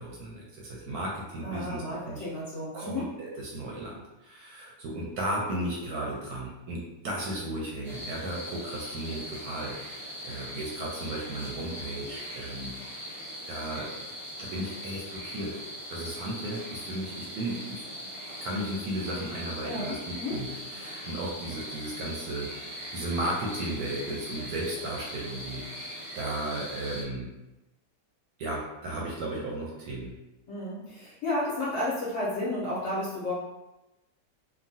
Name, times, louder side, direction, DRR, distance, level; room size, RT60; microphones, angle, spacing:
voice 1, 0.0-2.2 2.7-12.7 13.5-13.9 14.4-15.6 15.9-17.8 18.4-27.3 28.4-30.2, right 1 dB, 70° right, -3 dB, 1.0 m, -35 dB
voice 2, 1.4-3.1 19.6-20.4 30.5-33.3, left 1 dB, 55° left, -8 dB, 1.0 m, -32 dB
sound 1, 7.8-27.0, equal, ahead, 0.7 m, -40 dB
3.0 x 2.3 x 2.6 m, 0.98 s
omnidirectional pair, 1.9 m